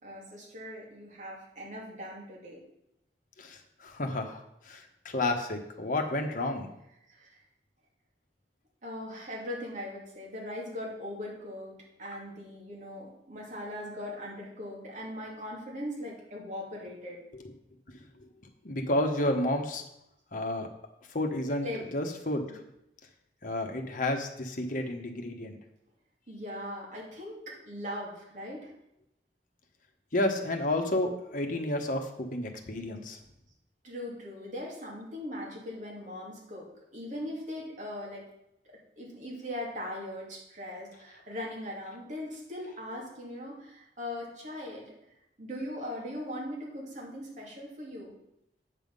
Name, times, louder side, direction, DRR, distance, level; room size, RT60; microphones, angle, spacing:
voice 1, 0.0-2.6 7.1-7.4 8.8-17.2 21.6-21.9 26.3-28.7 33.8-36.7 36.9-38.2 39.0-44.9 45.4-48.1, left 1 dB, 45° right, -3 dB, 2.6 m, -40 dB
voice 2, 3.4-6.7 17.3-17.4 18.2-18.3 18.6-19.8 20.3-20.7 21.1-21.7 21.9-22.6 23.4-25.6 30.1-33.2, left 1 dB, 50° left, 4 dB, 1.1 m, -31 dB
8.5 x 5.7 x 5.4 m, 0.82 s
head